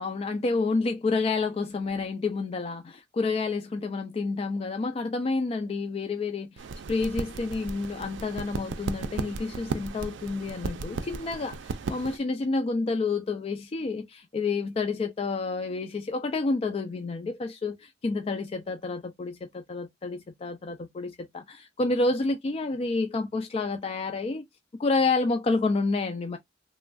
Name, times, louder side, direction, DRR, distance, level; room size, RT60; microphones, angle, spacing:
voice 1, 0.0-24.4 24.8-26.4, left 3 dB, 35° left, 0.3 m, -29 dB
sound 1, 6.6-12.2, right 4 dB, 75° right, 0.4 m, -35 dB
3.1 x 2.2 x 2.4 m
head